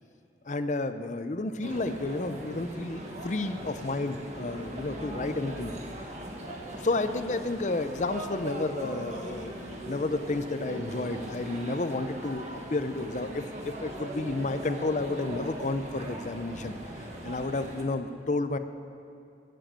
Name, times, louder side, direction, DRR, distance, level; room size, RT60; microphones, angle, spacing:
voice 1, 0.5-5.7 6.7-18.6, left 2 dB, 45° left, 10 dB, 0.6 m, -31 dB
sound 1, 1.6-17.8, right 1 dB, 40° right, 1.6 m, -40 dB
15.5 x 7.7 x 7.5 m, 2.5 s
head